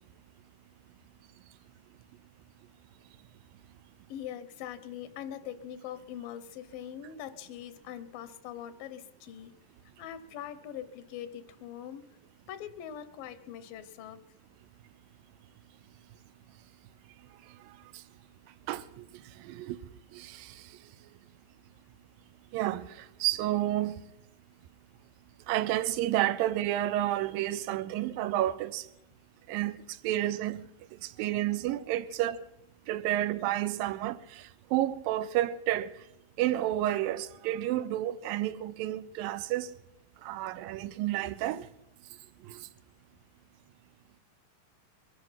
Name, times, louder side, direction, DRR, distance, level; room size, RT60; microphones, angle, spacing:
voice 1, 4.1-9.6 10.0-12.0 12.5-14.3, left 10 dB, 85° left, 2.7 m, -42 dB
voice 2, 18.7-19.0 19.4-19.8 20.1-20.6 22.5-24.0 25.5-28.9 29.5-30.6 31.0-32.4 32.9-35.9 36.4-39.8 40.2-41.7 42.5-42.6, right 13 dB, 90° right, 2.4 m, -30 dB
22.0 x 11.0 x 5.7 m
omnidirectional pair, 3.9 m